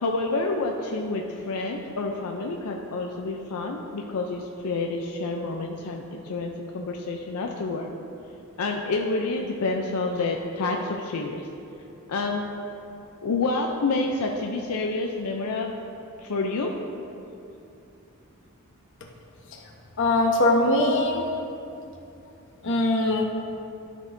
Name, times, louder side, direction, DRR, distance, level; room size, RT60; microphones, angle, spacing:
voice 1, 0.0-7.9 8.6-11.4 12.1-12.4 13.2-15.7 16.2-16.7, left 3 dB, 85° left, 1 dB, 0.5 m, -28 dB
voice 2, 20.0-21.2 22.6-23.2, left 2 dB, 60° left, 0 dB, 1.0 m, -21 dB
12.5 x 6.3 x 2.6 m, 2.7 s
head